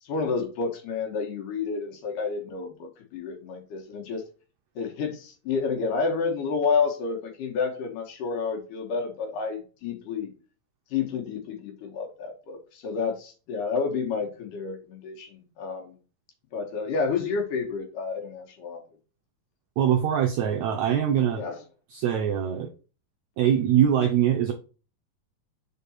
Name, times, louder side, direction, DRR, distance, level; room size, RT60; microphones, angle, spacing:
voice 1, 0.0-4.2 4.8-10.3 10.9-15.9 16.5-18.8 21.4-21.6, left 5 dB, 70° left, 2 dB, 2.6 m, -30 dB
voice 2, 19.8-21.4 21.9-22.7 23.4-24.5, right 9 dB, 85° right, 5 dB, 1.6 m, -23 dB
5.2 x 4.7 x 4.1 m, 0.36 s
omnidirectional pair, 4.1 m